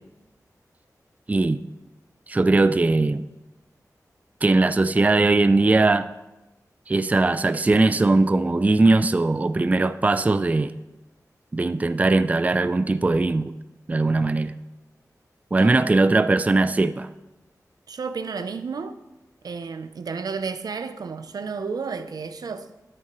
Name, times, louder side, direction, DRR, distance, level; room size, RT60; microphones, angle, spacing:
voice 1, 1.3-1.6 2.3-3.3 4.4-6.1 6.9-10.7 11.5-13.5 13.9-14.5 15.5-17.1, right 2 dB, 25° right, 0.3 m, -20 dB
voice 2, 17.9-19.0 19.4-22.7, right 5 dB, 80° right, 0.5 m, -32 dB
9.3 x 8.8 x 3.1 m
wide cardioid pair, 70°, 6 cm